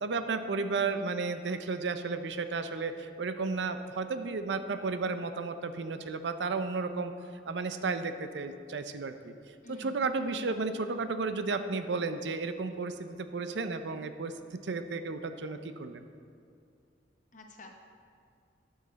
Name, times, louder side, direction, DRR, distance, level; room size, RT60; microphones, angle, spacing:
voice 1, 0.0-7.1 7.5-9.3 9.7-16.0, right 4 dB, 75° right, 9 dB, 0.5 m, -33 dB
voice 2, 0.8-1.1 9.6-10.0 10.3-10.5 17.3-17.7, left 2 dB, 45° left, 3 dB, 0.9 m, -48 dB
12.5 x 6.4 x 4.0 m, 2.4 s
head